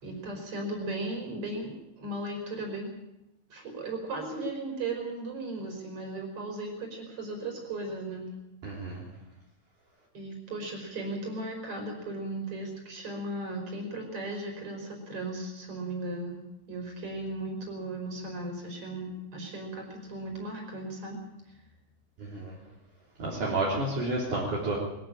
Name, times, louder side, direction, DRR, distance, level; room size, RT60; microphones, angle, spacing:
voice 1, 0.0-2.9 3.5-8.3 10.1-16.4 16.7-21.6, right 2 dB, 35° right, 3 dB, 5.8 m, -36 dB
voice 2, 8.6-9.0 22.3-22.5 23.2-24.8, right 2 dB, 50° right, -5 dB, 4.7 m, -30 dB
21.5 x 14.0 x 8.9 m, 0.93 s
omnidirectional pair, 4.6 m